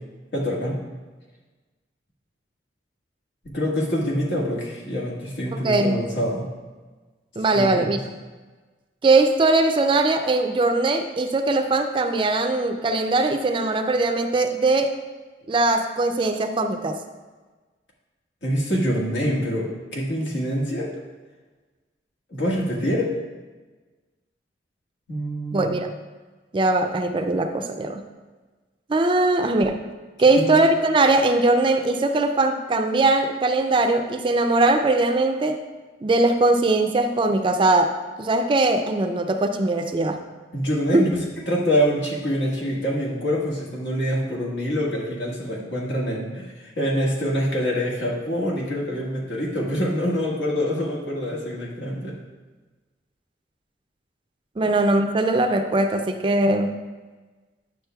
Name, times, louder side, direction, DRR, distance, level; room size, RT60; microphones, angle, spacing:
voice 1, 0.3-0.8 3.4-6.5 7.5-7.9 18.4-20.9 22.3-23.1 25.1-25.8 30.4-30.5 40.5-52.1 54.6-54.7, equal, 80° left, -3 dB, 1.6 m, -25 dB
voice 2, 5.5-6.0 7.4-8.0 9.0-15.0 15.5-17.0 25.5-25.9 26.5-28.0 28.9-29.9 30.2-35.6 36.0-40.2 40.9-41.0 54.6-56.8, right 2 dB, 30° right, 6 dB, 0.4 m, -20 dB
9.5 x 6.3 x 2.3 m, 1.3 s
head